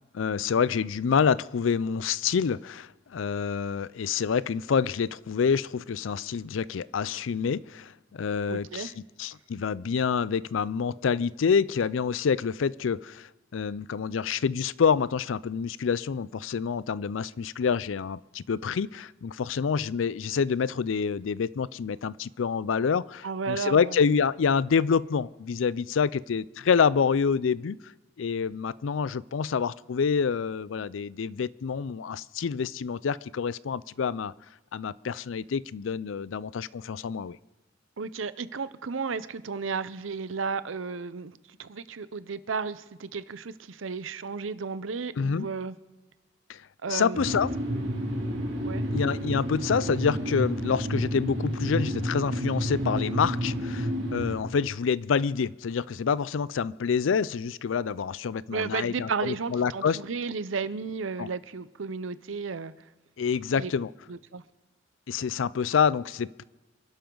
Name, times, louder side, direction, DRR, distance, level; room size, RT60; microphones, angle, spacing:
voice 1, 0.1-27.8 28.2-34.3 34.7-37.4 45.2-45.5 46.5-46.6 46.9-47.5 48.9-60.0 61.2-61.3 63.2-63.9 65.1-66.4, left 6 dB, 85° left, 20 dB, 0.4 m, -27 dB
voice 2, 8.5-8.9 23.2-24.0 38.0-45.8 46.8-47.2 48.6-48.9 58.5-62.7 63.6-63.7 64.1-64.4, right 5 dB, 85° right, 15 dB, 0.7 m, -33 dB
sound 1, 47.1-54.4, equal, 65° right, 3.0 m, -30 dB
27.0 x 11.5 x 3.9 m, 1.1 s
head